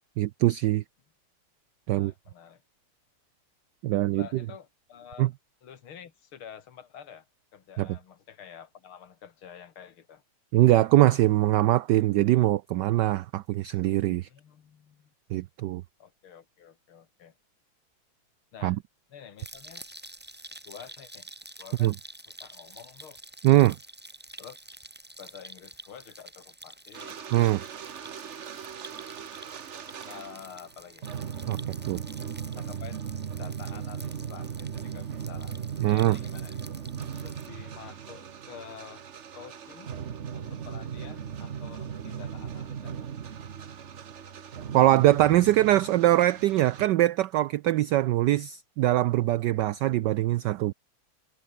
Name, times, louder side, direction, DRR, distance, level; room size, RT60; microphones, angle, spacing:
voice 1, 0.2-0.8 1.9-2.1 3.8-4.3 5.2-5.3 7.8-7.9 10.5-14.3 15.3-15.8 18.6-18.8 21.8-21.9 23.4-23.8 27.3-27.6 31.5-31.6 31.9-32.0 35.8-36.2 44.7-50.7, right 15 dB, 90° right, 0.9 m, -22 dB
voice 2, 1.9-2.6 4.1-5.3 5.6-7.3 7.5-10.2 14.3-15.1 16.0-17.3 18.5-18.8 19.1-19.9 20.6-21.3 21.6-22.0 22.2-23.2 24.4-24.6 25.2-27.2 30.0-31.1 32.4-33.0 33.4-36.6 37.2-39.1 39.3-39.9 40.3-43.1, left 8 dB, 70° left, 2.6 m, -48 dB
sound 1, 19.4-37.5, right 1 dB, 10° right, 0.4 m, -49 dB
sound 2, 26.9-30.7 31.0-46.9, right 8 dB, 45° right, 0.9 m, -38 dB
omnidirectional pair, 2.4 m